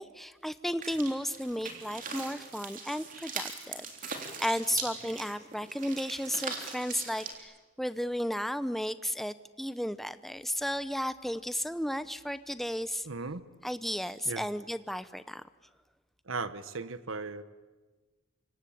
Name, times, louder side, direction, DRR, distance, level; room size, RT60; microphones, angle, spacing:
voice 1, 0.0-13.1 13.6-15.4, equal, ahead, 13 dB, 0.8 m, -34 dB
sound 1, 0.8-7.4, right 5 dB, 40° right, 3.6 m, -41 dB
voice 2, 13.0-13.4 14.2-14.4 16.2-17.4, right 4 dB, 80° right, 13 dB, 1.2 m, -37 dB
27.0 x 24.5 x 8.7 m, 1.3 s
head